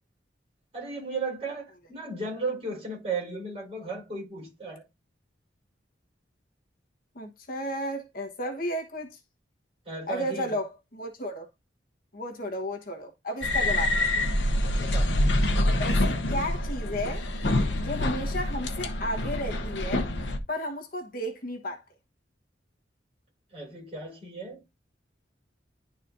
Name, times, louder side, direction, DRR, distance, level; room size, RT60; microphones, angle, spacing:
voice 1, 0.7-4.8 9.8-10.6 14.7-15.1 23.5-24.6, right 3 dB, 35° right, 4.3 m, -35 dB
voice 2, 7.1-9.2 10.1-11.5 12.1-14.2 15.8-17.3 17.8-20.1 20.5-21.8, equal, 50° left, 1.2 m, -33 dB
sound 1, 13.4-20.4, left 1 dB, 75° left, 0.9 m, -26 dB
11.0 x 4.2 x 2.6 m
head